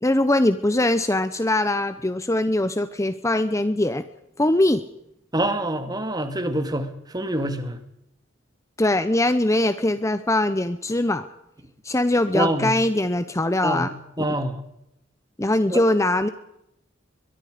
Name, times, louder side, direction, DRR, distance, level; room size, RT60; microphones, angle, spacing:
voice 1, 0.0-4.0 4.4-4.8 8.8-11.3 11.8-13.9 15.4-16.3, left 1 dB, 15° left, 12 dB, 0.8 m, -21 dB
voice 2, 5.3-7.8 12.3-12.7 13.6-14.6 15.7-15.8, right 1 dB, 20° right, 9 dB, 2.2 m, -26 dB
23.0 x 22.5 x 5.1 m, 0.80 s
head